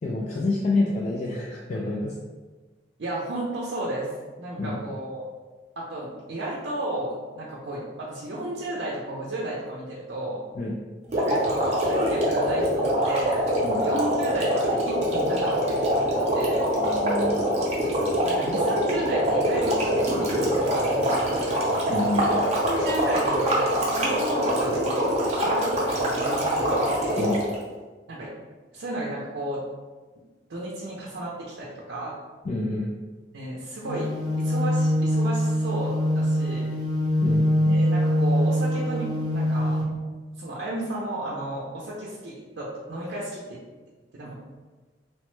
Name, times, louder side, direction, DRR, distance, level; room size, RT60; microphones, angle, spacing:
voice 1, 0.0-2.2 4.6-4.8 10.5-10.7 13.6-13.8 16.7-17.4 21.9-22.3 27.2-27.4 32.4-32.9 37.2-37.8, left 2 dB, 40° left, -4 dB, 0.3 m, -28 dB
voice 2, 3.0-4.1 4.4-5.3 5.8-10.4 11.3-13.5 13.8-16.1 16.3-16.6 18.2-21.7 22.3-26.9 28.1-28.3 28.7-29.6 30.5-32.2 33.3-36.7 37.7-39.8 40.4-43.6 44.1-44.3, right 1 dB, 85° right, -5 dB, 0.5 m, -33 dB
sound 1, 11.1-27.5, equal, 40° right, 0.6 m, -24 dB
sound 2, 33.8-39.8, equal, 20° left, 0.8 m, -23 dB
3.0 x 2.1 x 3.1 m, 1.3 s
head